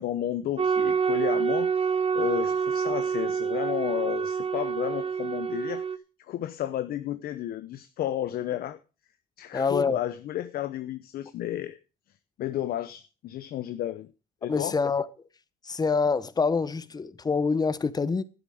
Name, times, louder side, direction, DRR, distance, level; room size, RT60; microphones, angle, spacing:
voice 1, 0.0-5.8 6.3-8.8 9.4-11.8 12.4-14.1 14.4-14.8, left 12 dB, 65° left, 0.8 m, -32 dB
sound 1, 0.6-6.0, right 6 dB, 35° right, 0.9 m, -27 dB
voice 2, 9.5-10.0 14.5-15.1 15.6-18.2, left 4 dB, 25° left, 0.9 m, -26 dB
12.0 x 9.1 x 4.9 m
cardioid pair, 110°, 17 cm